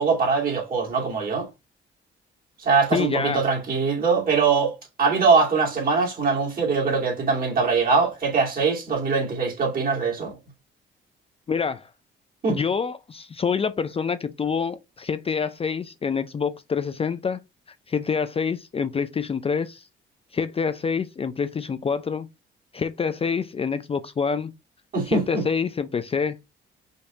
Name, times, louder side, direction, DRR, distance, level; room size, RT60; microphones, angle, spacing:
voice 1, 0.0-1.5 2.6-10.4 12.4-12.6 24.9-25.4, right 4 dB, 45° right, 2.6 m, -22 dB
voice 2, 2.9-3.4 11.5-11.9 12.5-17.4 17.9-19.9 20.3-22.3 22.7-24.5 25.1-26.4, left 6 dB, 30° left, 0.4 m, -26 dB
5.2 x 2.7 x 3.7 m
cardioid pair, 90°, 20 cm